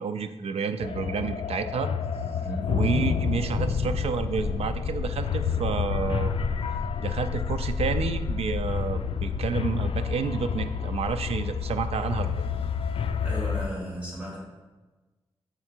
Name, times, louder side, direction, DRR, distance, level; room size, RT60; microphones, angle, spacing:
voice 1, 0.0-1.9 2.7-6.3 7.0-12.4, right 6 dB, 85° right, 9 dB, 0.4 m, -30 dB
sound 1, 0.8-13.7, left 6 dB, 70° left, 0.4 m, -29 dB
voice 2, 2.4-2.8 13.2-14.4, equal, 10° right, -6 dB, 1.5 m, -35 dB
7.1 x 3.8 x 4.4 m, 1.2 s
wide cardioid pair, 130°, 10 cm